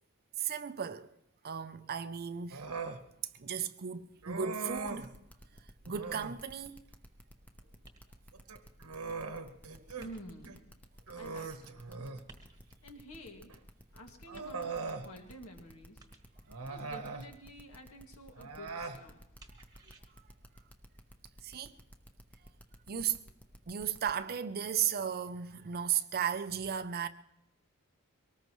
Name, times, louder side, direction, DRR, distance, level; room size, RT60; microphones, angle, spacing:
voice 1, 0.4-1.1 1.4-2.6 3.4-5.1 5.8-6.8 9.7-9.8 21.4-21.7 22.9-23.2 23.7-27.1, right 8 dB, 45° right, 0.5 m, -35 dB
Human voice, 2.5-3.0 4.2-5.1 5.9-6.4 8.3-10.1 10.5-10.6 11.1-12.3 13.5-13.6 14.3-15.1 16.5-17.3 18.4-19.0, right 4 dB, 75° right, 1.1 m, -40 dB
sound 1, 4.7-24.1, equal, 5° left, 0.9 m, -54 dB
sound 2, 7.8-8.4 10.0-10.6 12.3-12.9 14.3-15.0 16.0-16.5 19.4-20.0, right 2 dB, 20° right, 1.3 m, -57 dB
voice 2, 9.9-10.7 11.1-11.8 12.8-13.5 13.9-16.0 16.7-19.2, equal, 65° left, 2.1 m, -50 dB
23.5 x 19.0 x 3.1 m
head